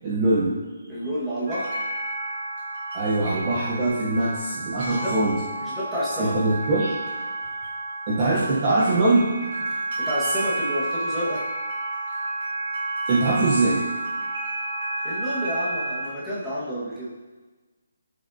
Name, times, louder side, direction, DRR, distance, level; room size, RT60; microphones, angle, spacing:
voice 1, 0.0-0.6 2.9-5.4 6.2-7.0 8.1-9.3 9.6-9.7 13.1-13.8, right 2 dB, 20° right, -6 dB, 0.9 m, -22 dB
voice 2, 0.9-1.7 4.9-5.1 5.6-6.3 10.0-11.4 15.0-17.1, equal, ahead, -12 dB, 1.5 m, -29 dB
sound 1, 1.5-16.1, right 2 dB, 35° right, 2.8 m, -31 dB
13.0 x 6.5 x 2.7 m, 1.3 s
hypercardioid pair, 175°, 0 cm